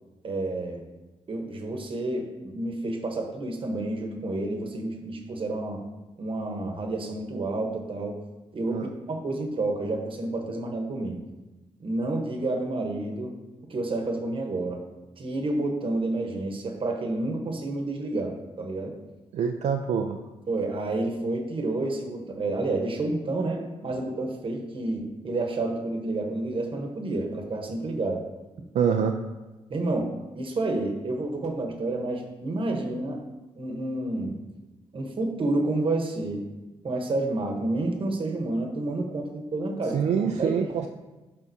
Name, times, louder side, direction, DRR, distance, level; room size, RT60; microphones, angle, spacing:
voice 1, 0.2-0.8 1.3-5.8 6.2-8.2 8.5-11.2 11.8-13.3 13.7-14.8 15.2-19.0 20.5-28.2 29.7-30.1 30.3-33.2 33.6-34.4 34.9-36.5 36.8-40.9, right 2 dB, 50° right, 3 dB, 1.0 m, -29 dB
voice 2, 19.3-20.2 28.7-29.1 39.9-40.9, right 7 dB, 75° right, 4 dB, 0.4 m, -25 dB
10.0 x 3.6 x 2.7 m, 1.1 s
cardioid pair, 80°, 12 cm